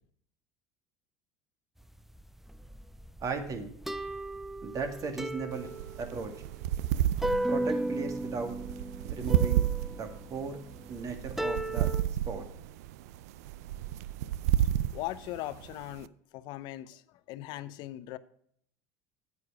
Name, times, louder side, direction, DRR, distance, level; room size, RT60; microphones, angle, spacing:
sound 1, 2.0-12.0, right 1 dB, 5° right, 0.5 m, -35 dB
voice 1, 3.2-3.7 4.6-5.7 6.0-6.3 7.5-8.6 9.1-9.6 10.0-10.6 10.9-11.9 12.3-12.5, right 4 dB, 40° right, 2.2 m, -36 dB
sound 2, 5.5-16.1, right 12 dB, 75° right, 0.4 m, -31 dB
voice 2, 14.9-17.0 17.3-18.2, left 15 dB, 60° left, 0.7 m, -39 dB
9.5 x 8.6 x 4.8 m
hypercardioid pair, 80°, 9 cm